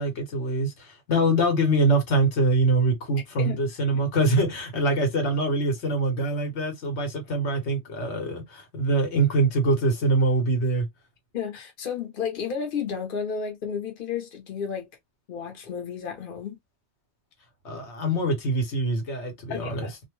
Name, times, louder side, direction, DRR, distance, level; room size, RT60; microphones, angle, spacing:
voice 1, 0.0-10.9 17.6-19.9, right 2 dB, 90° left, 1.3 m, -24 dB
voice 2, 11.3-14.9 15.3-16.6 19.5-19.9, left 7 dB, 55° left, 1.0 m, -32 dB
2.6 x 2.2 x 3.0 m
omnidirectional pair, 1.1 m